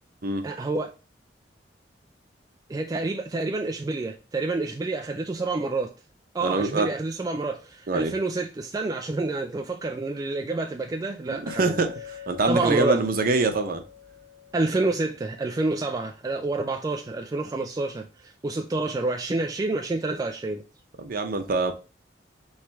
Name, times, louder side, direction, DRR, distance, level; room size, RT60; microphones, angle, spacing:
voice 1, 0.4-0.9 2.7-5.9 6.3-11.8 12.5-13.0 14.5-20.6, right 3 dB, 20° right, 0.3 m, -28 dB
voice 2, 6.4-6.9 7.9-8.1 11.3-12.0 12.3-13.8 21.0-21.7, right 3 dB, 55° right, 0.7 m, -24 dB
Chink clink, 11.5-15.9, left 9 dB, 85° left, 1.3 m, -44 dB
4.5 x 3.2 x 3.4 m
head